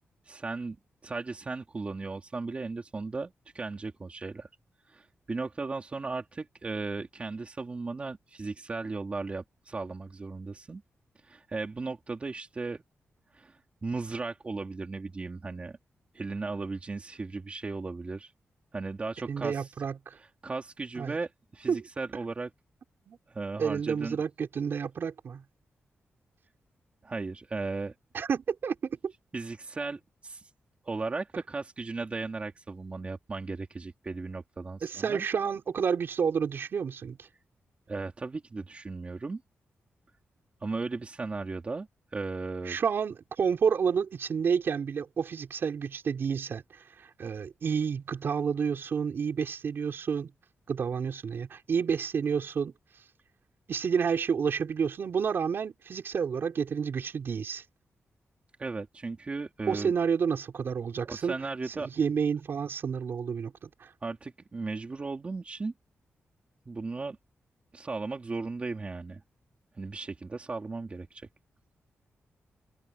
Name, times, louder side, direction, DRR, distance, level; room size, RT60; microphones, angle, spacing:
voice 1, 0.3-0.8 1.0-4.5 4.9-10.8 11.2-12.8 13.3-15.8 16.1-18.3 18.7-19.7 20.4-22.5 23.3-24.2 27.0-27.9 29.3-30.4 30.8-35.2 37.9-39.4 40.6-42.8 58.6-59.9 61.1-61.9 64.0-65.7 66.6-67.2 67.7-69.2 69.8-71.3, right 3 dB, 30° right, 3.1 m, -36 dB
voice 2, 19.3-20.2 21.0-21.2 21.7-21.8 23.1-23.2 23.6-25.4 28.1-29.1 34.8-37.3 42.7-50.3 50.7-52.7 53.7-57.6 59.7-61.3 61.7-63.9, right 6 dB, 55° right, 4.4 m, -30 dB
wide cardioid pair, 150°, 5 cm